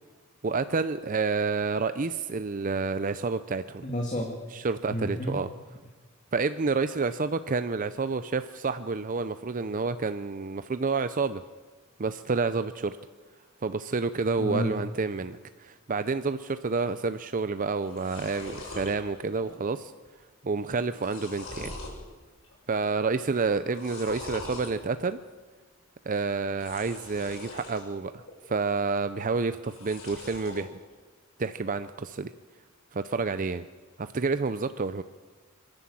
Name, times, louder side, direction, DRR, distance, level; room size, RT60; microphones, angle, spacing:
voice 1, 0.4-3.8 4.5-5.5 6.3-11.4 12.0-13.0 13.6-19.9 20.4-21.8 22.7-25.2 26.0-30.8 31.4-32.3 32.9-33.7 34.0-35.0, right 4 dB, 40° right, 11 dB, 0.5 m, -29 dB
voice 2, 3.8-4.4 4.9-5.4 14.4-14.7, equal, 35° left, 1 dB, 2.2 m, -30 dB
sound 1, 17.4-17.5 17.7-18.9 19.4-19.8 20.0-20.1 20.7-22.0 22.4-22.9 23.6-24.7 26.5-27.8 28.3-28.9 29.6-30.6, left 2 dB, 70° left, 7.0 m, -42 dB
26.0 x 11.5 x 8.6 m, 1.4 s
head